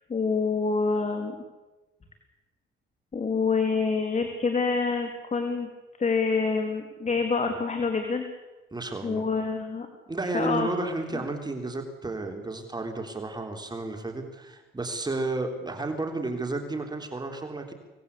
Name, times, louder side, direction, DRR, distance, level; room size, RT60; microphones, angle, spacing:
voice 1, 0.1-1.3 3.1-5.7 6.0-8.3 9.0-9.9 10.3-10.7, left 4 dB, 35° left, 5 dB, 3.3 m, -26 dB
voice 2, 8.7-9.2 10.1-17.7, right 2 dB, 20° right, 4 dB, 3.6 m, -32 dB
25.5 x 19.0 x 8.4 m, 1.1 s
cardioid pair, 90°, 20 cm